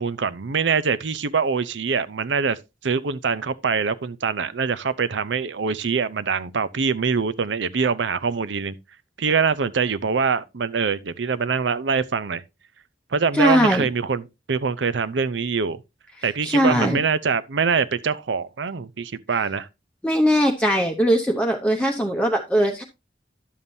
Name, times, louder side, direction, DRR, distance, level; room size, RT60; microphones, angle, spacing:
voice 1, 0.0-2.6 2.8-8.7 9.2-12.4 13.1-15.8 16.2-19.7, right 5 dB, 90° right, 0.6 m, -24 dB
voice 2, 13.4-13.9 16.4-17.0 20.0-22.8, equal, 5° left, 0.8 m, -20 dB
11.0 x 7.2 x 2.7 m
head